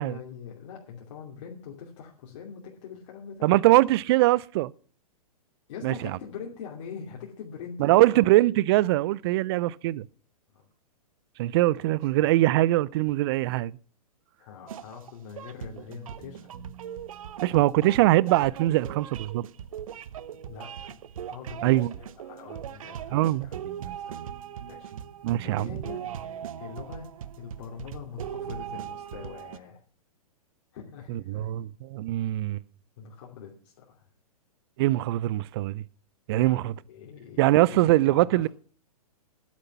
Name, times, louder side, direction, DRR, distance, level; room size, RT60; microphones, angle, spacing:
voice 1, 0.0-3.6 5.7-8.2 10.5-10.7 12.2-12.3 14.4-16.5 20.5-21.0 21.3-23.6 23.8-24.3 24.7-24.9 25.4-26.0 26.6-27.1 27.4-29.8 30.7-31.5 33.0-34.1 36.3-37.8 38.1-38.5, left 7 dB, 50° left, 2.9 m, -43 dB
voice 2, 3.4-4.7 5.8-5.9 7.8-10.1 11.4-13.8 17.4-19.4 21.6-21.9 23.1-23.5 25.2-25.7 31.1-32.6 34.8-35.8 36.3-36.7 37.4-38.5, right 17 dB, 40° right, 0.5 m, -22 dB
sound 1, 14.7-29.6, right 9 dB, 60° right, 0.9 m, -39 dB
11.5 x 9.6 x 5.7 m
hypercardioid pair, 115°, 19 cm